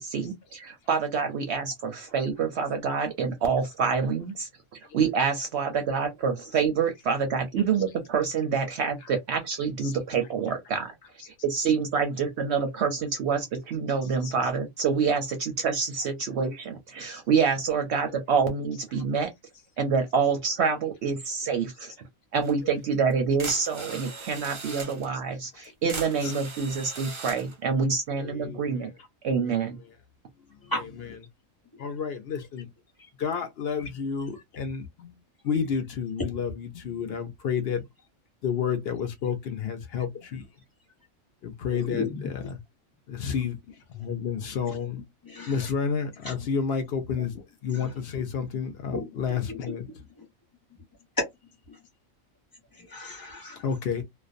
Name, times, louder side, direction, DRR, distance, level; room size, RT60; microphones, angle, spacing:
voice 1, 0.0-4.5 4.9-10.9 11.4-19.3 19.8-21.9 22.3-28.9 29.2-29.8, right 5 dB, 65° right, 0.7 m, -27 dB
sound 1, 22.4-22.5 23.1-23.2 23.4-25.1 25.6-27.6, right 3 dB, 45° right, 0.4 m, -39 dB
voice 2, 28.2-28.9 29.4-29.6 31.8-32.7 33.2-35.2 35.4-37.9 38.4-40.4 41.4-42.0 43.1-45.0 45.5-49.9 53.6-54.0, left 6 dB, 60° left, 0.7 m, -30 dB
voice 3, 41.7-42.2 45.2-45.7 46.2-46.3 47.1-47.2 47.7-47.9 48.9-49.2 49.5-50.2 51.2-51.3 51.7-51.8 52.7-53.7, left 2 dB, 20° left, 0.9 m, -34 dB
2.4 x 2.1 x 2.4 m
omnidirectional pair, 1.4 m